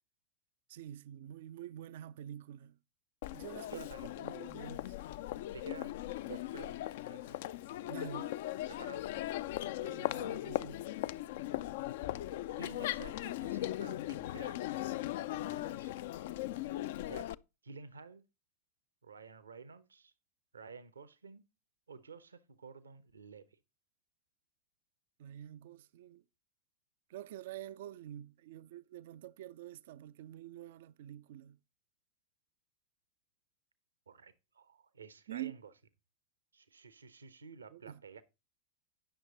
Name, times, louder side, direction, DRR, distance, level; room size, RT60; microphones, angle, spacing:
voice 1, 0.7-2.8 3.3-5.0 7.8-8.3 9.8-10.8 25.2-26.2 27.1-31.6 35.3-35.6 37.7-38.0, right 12 dB, 55° right, 0.4 m, -47 dB
Crowd, 3.2-17.3, left 14 dB, 55° left, 0.4 m, -39 dB
voice 2, 3.7-4.1 5.5-6.0 6.3-7.4 8.7-9.1 12.6-14.8 15.3-16.0 17.0-17.3 17.6-18.2 19.0-20.1 20.5-21.4 21.9-23.6 34.1-35.7 36.5-38.2, right 5 dB, 75° right, 0.9 m, -51 dB
10.5 x 6.4 x 4.0 m
figure-of-eight pair, 90°, 0 cm